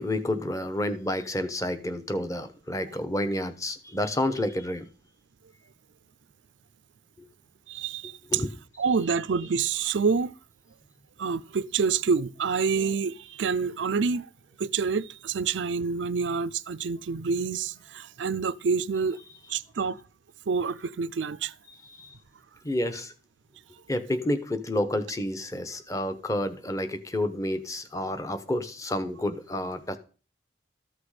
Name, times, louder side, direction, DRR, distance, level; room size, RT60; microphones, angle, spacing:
voice 1, 0.0-4.9 8.3-8.5 21.8-22.1 22.6-23.1 23.9-30.0, left 1 dB, 20° left, 0.9 m, -30 dB
voice 2, 7.7-8.4 8.8-10.3 11.2-14.3 14.6-19.2 19.5-20.0 20.5-21.5, right 5 dB, 80° right, 0.5 m, -27 dB
13.5 x 6.1 x 4.9 m
head